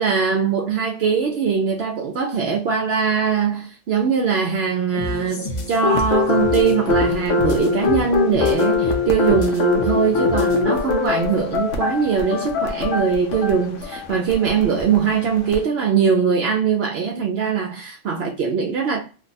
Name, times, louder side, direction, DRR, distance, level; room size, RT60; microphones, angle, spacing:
voice 1, 0.0-19.0, right 6 dB, 65° right, 0.8 m, -21 dB
sound 1, 4.9-10.7, left 1 dB, 45° left, 0.7 m, -31 dB
sound 2, 5.8-15.6, left 5 dB, 80° left, 1.0 m, -23 dB
2.8 x 2.3 x 3.9 m
omnidirectional pair, 1.2 m